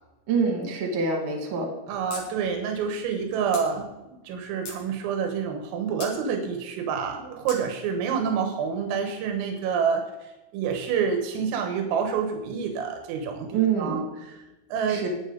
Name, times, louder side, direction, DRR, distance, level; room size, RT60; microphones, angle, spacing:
voice 1, 0.3-1.7 13.5-14.0 14.9-15.1, right 5 dB, 50° right, 2 dB, 3.0 m, -25 dB
voice 2, 1.9-14.4 14.7-15.0, right 6 dB, 90° right, 3 dB, 4.0 m, -28 dB
sound 1, 2.1-2.2 2.5-2.6 3.5-3.7 4.3-4.8 6.0-6.2 7.5-7.6, left 4 dB, 50° left, 2.6 m, -38 dB
20.0 x 7.3 x 3.9 m, 1.0 s
omnidirectional pair, 5.8 m